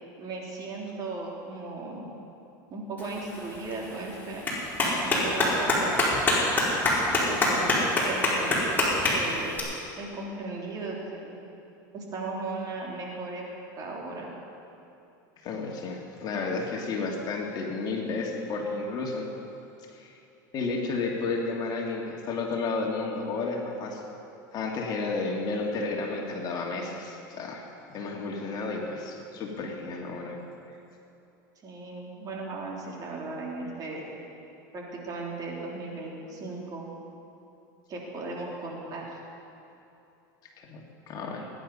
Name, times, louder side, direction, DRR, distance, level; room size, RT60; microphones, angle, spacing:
voice 1, 0.2-2.1 2.7-4.5 5.0-6.1 7.1-9.5 10.0-11.4 11.9-13.4 13.8-14.3 31.6-34.0 34.7-36.9 37.9-39.2, right 3 dB, 35° right, -2 dB, 3.5 m, -36 dB
Clapping, 3.0-9.6, left 2 dB, 20° left, 4.4 m, -26 dB
voice 2, 15.4-19.3 19.9-20.1 20.5-24.1 24.5-30.4 40.6-41.5, left 3 dB, 40° left, 0 dB, 2.4 m, -32 dB
19.5 x 10.5 x 5.5 m, 2.8 s
supercardioid pair, 110°, 10 cm